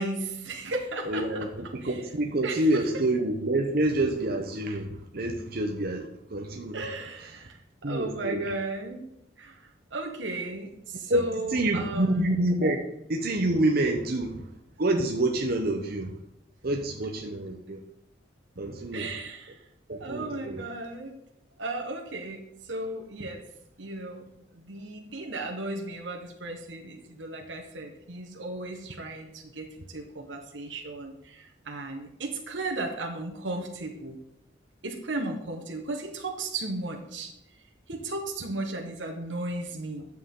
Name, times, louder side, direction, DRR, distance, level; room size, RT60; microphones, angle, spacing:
voice 1, 0.0-1.5 1.8-2.0 2.4-2.8 6.7-9.0 9.4-12.3 18.9-19.6 20.0-21.2 21.6-23.4 23.8-24.2 24.5-34.2 34.8-37.3 37.9-40.1, right 2 dB, 75° right, 2 dB, 1.3 m, -35 dB
voice 2, 1.1-6.8 7.8-8.5 11.1-12.8 13.1-14.5 14.8-16.2 16.6-17.8 18.6-19.1 19.9-20.7, right 1 dB, 55° right, 3 dB, 0.8 m, -27 dB
11.0 x 7.5 x 3.8 m, 0.77 s
head